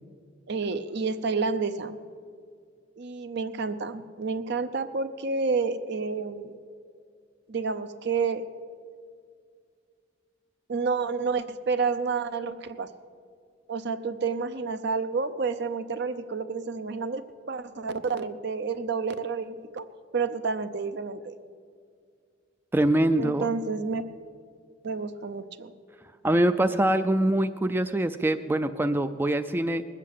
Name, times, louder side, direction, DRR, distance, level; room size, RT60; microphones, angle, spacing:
voice 1, 0.5-2.0 3.0-6.6 7.5-8.4 10.7-12.9 13.7-19.9 20.1-21.4 23.2-24.0 24.8-25.7, right 4 dB, 60° right, 11 dB, 0.6 m, -29 dB
voice 2, 22.7-23.5 26.2-29.8, right 1 dB, 10° right, 10 dB, 0.3 m, -24 dB
20.0 x 7.5 x 8.3 m, 2.2 s
head